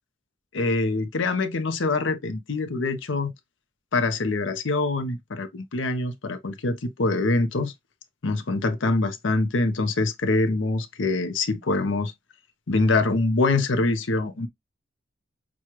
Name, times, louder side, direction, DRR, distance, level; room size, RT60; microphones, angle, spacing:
voice 1, 0.5-3.3 3.9-7.7 8.2-12.1 12.7-14.5, left 3 dB, 80° left, 0.8 m, -24 dB
6.1 x 2.3 x 3.0 m
head